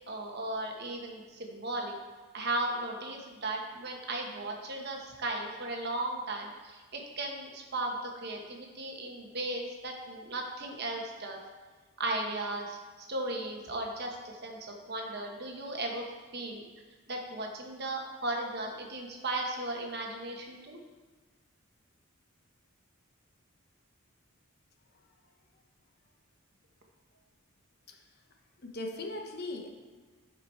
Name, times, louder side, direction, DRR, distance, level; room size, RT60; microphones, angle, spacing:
voice 1, 0.1-1.9 2.3-11.4 12.0-16.0 16.3-16.6 17.1-20.8, right 2 dB, 50° right, 1 dB, 1.2 m, -36 dB
voice 2, 28.6-29.7, left 2 dB, 45° left, 3 dB, 0.9 m, -39 dB
11.0 x 5.0 x 4.4 m, 1.4 s
head